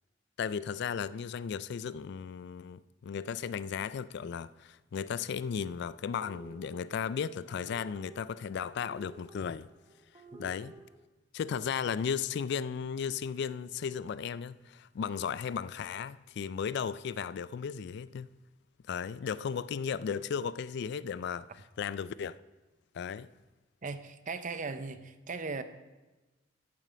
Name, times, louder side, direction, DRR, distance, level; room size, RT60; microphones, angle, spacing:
voice 1, 0.4-9.7 10.4-10.8 11.3-18.3 18.9-21.5 21.8-22.4 22.9-23.3, left 7 dB, 60° left, 0.3 m, -35 dB
sound 1, 6.1-11.0, right 2 dB, 25° right, 1.1 m, -54 dB
voice 2, 23.8-25.6, right 4 dB, 45° right, 0.7 m, -38 dB
13.5 x 7.4 x 5.1 m
head